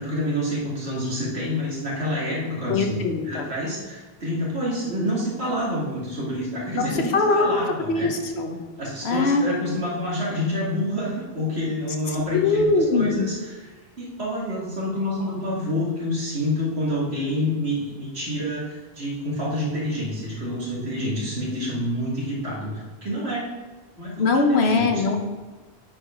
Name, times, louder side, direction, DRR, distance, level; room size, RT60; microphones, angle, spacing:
voice 1, 0.0-3.0 3.2-8.1 8.8-12.7 12.9-23.5 24.0-24.2 24.6-24.8, left 1 dB, 80° right, -6 dB, 2.6 m, -28 dB
voice 2, 2.7-3.5 6.7-6.9 7.1-7.6 7.9-8.6 9.0-9.5 12.3-13.3 24.2-25.2, left 3 dB, 80° left, 4 dB, 1.2 m, -21 dB
8.7 x 4.8 x 5.1 m, 1.3 s
omnidirectional pair, 1.1 m